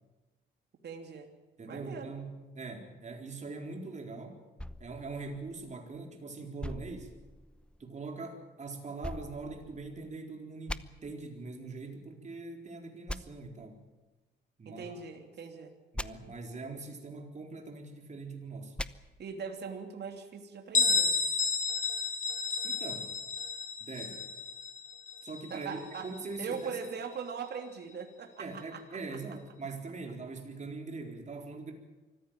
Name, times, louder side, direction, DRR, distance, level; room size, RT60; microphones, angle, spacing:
voice 1, 0.8-1.3 1.7-2.1 14.6-15.7 19.2-21.2 25.5-26.1 26.4-29.0, right 6 dB, 55° right, 4 dB, 3.0 m, -41 dB
voice 2, 1.6-4.4 4.8-7.1 7.8-13.8 14.6-15.0 15.9-18.8 22.6-23.1 23.8-24.2 25.2-26.8 28.4-31.7, right 3 dB, 35° right, 3 dB, 4.2 m, -42 dB
sound 1, 4.6-6.0 6.6-7.8 9.0-10.2 10.7-10.8 13.1-13.2 15.9-16.1 18.8-18.9, left 1 dB, 5° left, 0.8 m, -41 dB
Bell, 20.7-26.3, left 4 dB, 40° left, 1.9 m, -31 dB
24.5 x 15.0 x 9.1 m, 1.2 s
cardioid pair, 90°, 20 cm